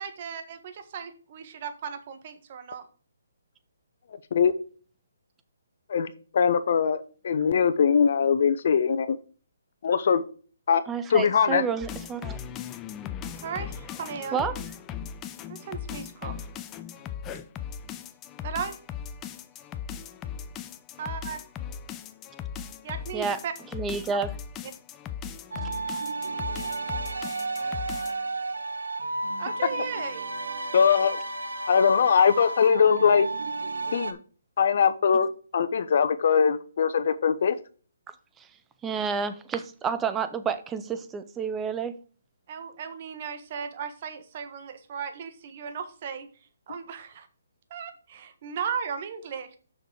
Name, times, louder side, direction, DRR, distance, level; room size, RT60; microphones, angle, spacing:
voice 1, 0.0-2.8 13.3-14.4 15.5-16.4 18.4-18.7 21.0-21.4 22.8-23.5 29.4-30.3 42.5-46.3 46.7-47.3 47.7-49.6, right 7 dB, 45° right, 8 dB, 1.4 m, -36 dB
voice 2, 5.9-9.2 9.8-10.2 10.7-10.8 11.1-11.6 30.7-31.2 31.7-33.3 33.9-34.2 34.6-37.6, left 6 dB, 55° left, 12 dB, 0.8 m, -22 dB
voice 3, 10.9-12.4 14.3-14.6 23.1-23.4 23.7-24.3 25.6-26.0 38.4-38.5 38.8-41.9, right 6 dB, 15° right, 11 dB, 0.7 m, -30 dB
sound 1, 11.8-28.2, left 8 dB, 20° left, 0.6 m, -38 dB
sound 2, 25.5-34.1, right 3 dB, 90° right, 0.9 m, -32 dB
6.7 x 6.0 x 4.7 m, 0.40 s
hypercardioid pair, 150°, 0 cm